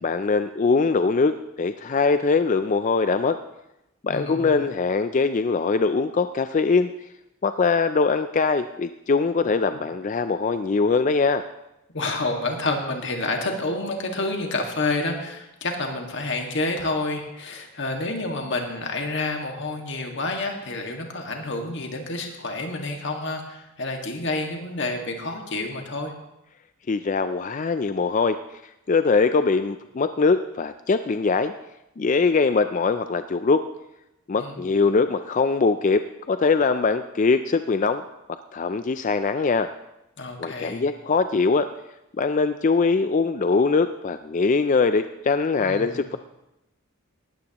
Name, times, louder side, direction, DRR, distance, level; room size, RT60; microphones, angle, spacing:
voice 1, 0.0-3.4 4.0-6.9 7.4-11.4 26.9-28.4 28.9-31.5 32.0-33.6 34.3-38.0 38.5-39.7 40.4-41.7 42.2-46.2, left 4 dB, 35° left, 10 dB, 0.3 m, -22 dB
voice 2, 4.1-4.6 9.4-9.5 11.9-26.1 34.4-34.6 40.2-40.8 45.6-46.0, left 2 dB, 55° left, 2 dB, 1.8 m, -29 dB
18.5 x 13.5 x 3.0 m, 0.89 s
head